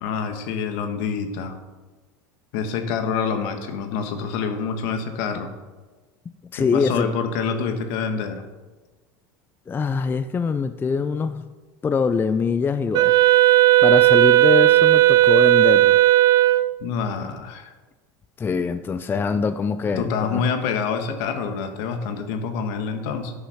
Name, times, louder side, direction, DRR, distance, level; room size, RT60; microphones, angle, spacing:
voice 1, 0.0-1.6 2.5-5.5 6.6-8.4 16.8-17.7 20.0-23.3, left 6 dB, 70° left, 6 dB, 1.4 m, -26 dB
voice 2, 6.5-7.1 9.7-11.4 11.8-13.1 13.8-16.0 18.4-20.4, left 5 dB, 20° left, 11 dB, 0.4 m, -23 dB
Wind instrument woodwind instrument, 12.9-16.8, right 16 dB, 45° right, 0.4 m, -15 dB
9.9 x 5.9 x 5.6 m, 1.3 s
supercardioid pair, 105°, 10 cm